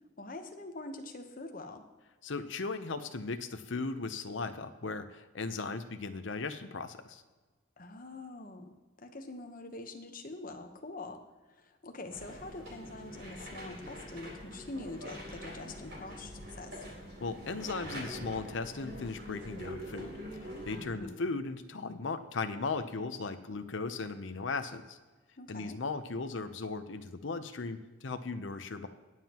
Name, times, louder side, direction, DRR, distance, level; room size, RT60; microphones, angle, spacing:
voice 1, 0.2-1.8 7.8-11.2 11.5-16.8 20.7-21.2 25.4-25.8, left 2 dB, 45° left, 5 dB, 1.0 m, -44 dB
voice 2, 2.2-7.2 17.2-20.1 20.4-25.0 25.5-28.9, left 3 dB, 65° left, 9 dB, 0.8 m, -37 dB
sound 1, 12.1-20.8, equal, 70° right, 4.2 m, -44 dB
20.0 x 7.4 x 3.0 m, 1.3 s
head